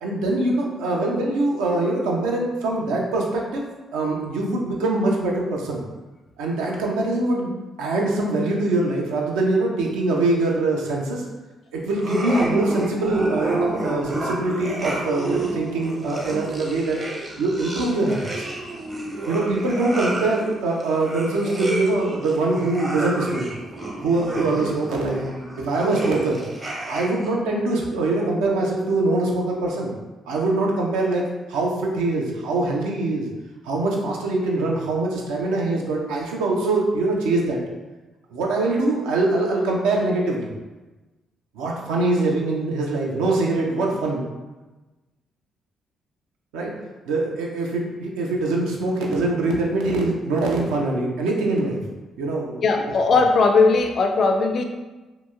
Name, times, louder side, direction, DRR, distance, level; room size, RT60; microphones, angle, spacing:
voice 1, 0.0-5.8 6.4-7.5 7.8-11.2 11.7-17.0 17.4-18.4 19.3-23.5 24.0-25.2 25.6-26.4 26.9-29.9 30.3-33.3 33.6-37.6 38.3-40.5 41.5-44.2 46.5-46.7 47.1-51.8 52.2-52.6, right 2 dB, 65° right, -1 dB, 0.4 m, -23 dB
sound 1, 11.9-27.3, right 2 dB, 25° right, 0.7 m, -30 dB
voice 2, 52.6-54.6, left 4 dB, 50° left, 4 dB, 0.3 m, -18 dB
2.8 x 2.6 x 2.3 m, 1.2 s
figure-of-eight pair, 40°, 0 cm